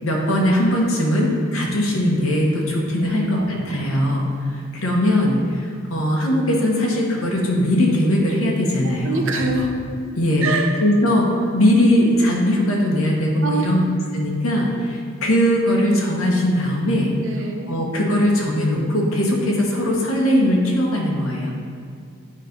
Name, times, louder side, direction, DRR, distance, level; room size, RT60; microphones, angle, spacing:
voice 1, 0.0-4.3 4.7-9.3 10.2-10.5 10.8-13.8 14.1-17.1 17.7-21.5, equal, 85° left, -2 dB, 1.1 m, -20 dB
voice 2, 3.0-4.0 8.8-9.7 10.4-10.7 13.4-13.8 17.2-17.7, right 2 dB, 65° right, 2 dB, 0.8 m, -26 dB
9.3 x 3.2 x 5.2 m, 2.3 s
head